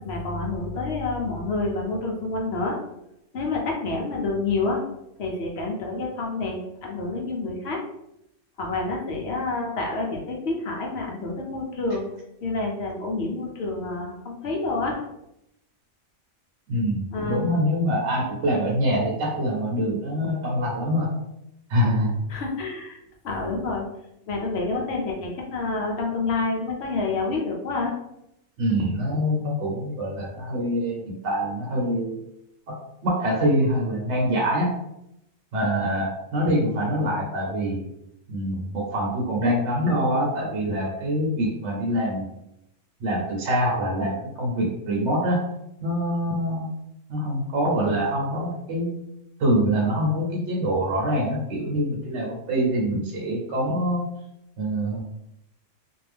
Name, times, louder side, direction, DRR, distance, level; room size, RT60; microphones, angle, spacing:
voice 1, 0.0-2.8 3.3-4.8 5.2-7.8 8.6-12.1 12.4-15.0 17.1-17.6 22.3-23.0 23.2-23.9 24.3-27.9, left 3 dB, 60° left, 0 dB, 0.8 m, -28 dB
voice 2, 16.7-21.1 21.7-22.2 28.6-32.1 32.7-32.8 33.0-34.7 35.5-37.9 38.3-42.3 43.0-45.4 45.8-46.7 47.1-48.9 49.4-54.1 54.6-55.0, equal, 65° right, -3 dB, 1.0 m, -25 dB
2.6 x 2.2 x 3.3 m, 0.83 s
omnidirectional pair, 1.4 m